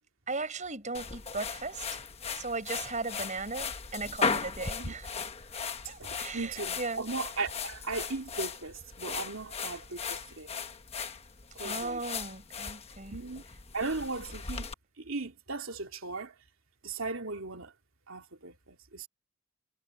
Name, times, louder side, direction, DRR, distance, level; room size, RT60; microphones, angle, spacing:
voice 1, 0.3-2.0 2.3-5.1 5.9-7.1 11.6-13.2, right 3 dB, 35° right, 5.6 m, -37 dB
sound 1, 0.9-14.7, left 5 dB, 30° left, 1.1 m, -37 dB
voice 2, 6.0-10.5 11.5-12.0 13.1-13.4 13.7-14.7 15.0-16.3 16.8-17.7 18.1-19.1, right 3 dB, 75° right, 2.7 m, -37 dB
head